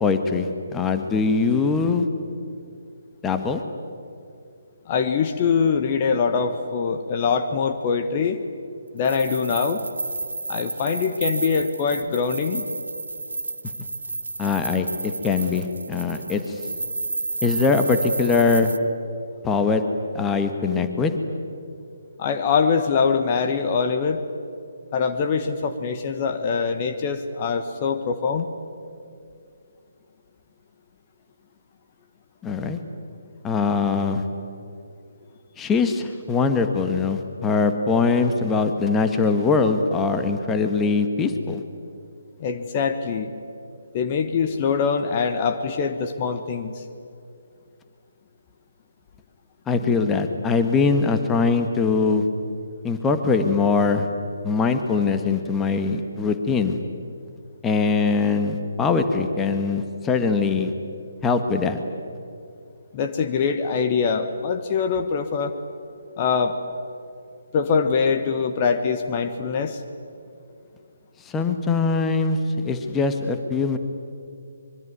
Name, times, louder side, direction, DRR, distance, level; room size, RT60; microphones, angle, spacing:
voice 1, 0.0-2.1 3.2-3.6 14.4-16.6 17.4-18.7 19.4-19.8 20.1-21.2 32.4-32.8 33.4-34.2 35.6-41.6 49.7-52.3 52.8-54.1 54.4-56.8 57.6-60.7 61.2-61.8 71.2-73.8, left 4 dB, 10° left, 7 dB, 1.5 m, -22 dB
voice 2, 4.9-8.4 8.9-9.9 10.5-12.6 22.2-24.2 24.9-28.5 42.4-43.3 43.9-46.8 62.9-65.6 66.2-66.6 67.5-69.8, left 5 dB, 30° left, 7 dB, 1.4 m, -23 dB
sound 1, 9.0-18.8, right 3 dB, 70° right, 1.1 m, -31 dB
25.0 x 23.0 x 9.6 m, 2.4 s
figure-of-eight pair, 140°, 0 cm